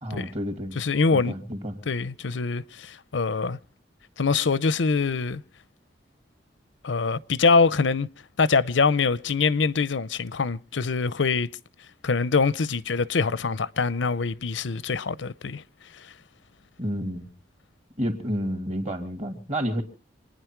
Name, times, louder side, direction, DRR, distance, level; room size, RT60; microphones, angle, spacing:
voice 1, 0.0-0.8 1.1-1.8 16.8-17.3 18.0-19.8, equal, 35° right, 2.7 m, -30 dB
voice 2, 0.8-1.3 1.9-3.6 4.2-5.4 6.8-8.1 8.4-11.5 12.0-15.6, left 4 dB, 90° left, 0.7 m, -24 dB
27.0 x 10.0 x 4.6 m
head